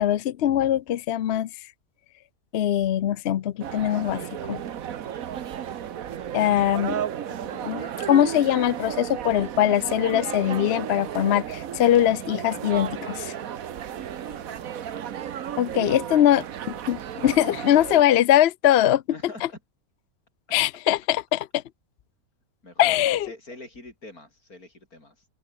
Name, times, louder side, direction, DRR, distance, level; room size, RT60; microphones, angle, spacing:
voice 1, 0.0-1.5 2.5-4.6 6.3-7.0 7.4-13.3 15.6-16.4 16.9-19.0 20.5-21.6 22.8-23.3, left 11 dB, 60° left, 0.7 m, -22 dB
sound 1, 3.6-18.0, right 9 dB, 70° right, 1.4 m, -34 dB
voice 2, 14.1-14.7 19.1-19.6 22.6-25.3, left 2 dB, 75° left, 7.3 m, -45 dB
open air
omnidirectional pair, 1.5 m